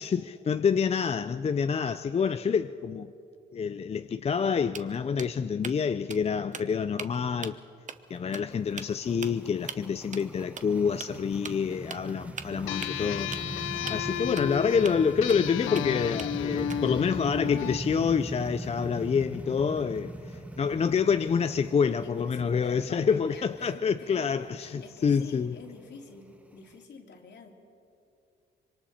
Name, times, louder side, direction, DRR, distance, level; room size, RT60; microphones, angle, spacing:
voice 1, 0.0-3.1 3.5-7.6 8.1-13.4 13.9-25.6, left 6 dB, 30° left, 0.5 m, -27 dB
sound 1, 4.3-4.5 4.7-5.8 6.1-6.2 6.5-7.1 7.4-7.6 7.9-8.0 8.3-8.4 8.8-8.9 9.2-9.3 9.7-9.8 10.1-10.3 10.6-10.7 11.0-11.1 11.4-11.5 11.9-12.1 12.4-13.5 13.9-14.0 14.4-14.5 14.8-14.9 15.3-15.8 16.2-17.0, right 6 dB, 40° right, 1.0 m, -40 dB
special fx, 8.0-26.7, right 1 dB, 5° right, 1.3 m, -41 dB
sound 2, 12.7-17.8, left 11 dB, 80° left, 0.6 m, -33 dB
voice 2, 13.7-14.1 22.0-27.5, left 4 dB, 60° left, 2.8 m, -47 dB
25.5 x 23.5 x 4.3 m
cardioid pair, 90°, 20 cm